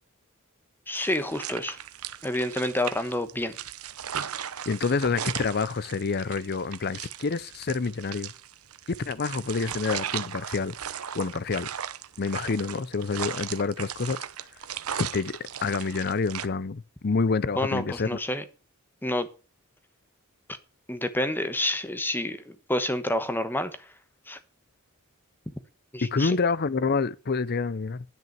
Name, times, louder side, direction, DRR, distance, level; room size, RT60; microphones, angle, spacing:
voice 1, 0.9-1.8 2.2-3.6 17.6-18.4 19.0-19.3 20.9-23.9 24.3-24.4 25.9-26.4, left 1 dB, 10° left, 1.1 m, -28 dB
sound 1, 0.9-16.5, right 9 dB, 80° right, 0.8 m, -37 dB
voice 2, 4.7-8.3 9.0-10.7 11.1-11.7 12.2-14.2 15.0-18.2 26.1-28.0, left 4 dB, 45° left, 0.6 m, -28 dB
10.5 x 6.2 x 7.4 m
head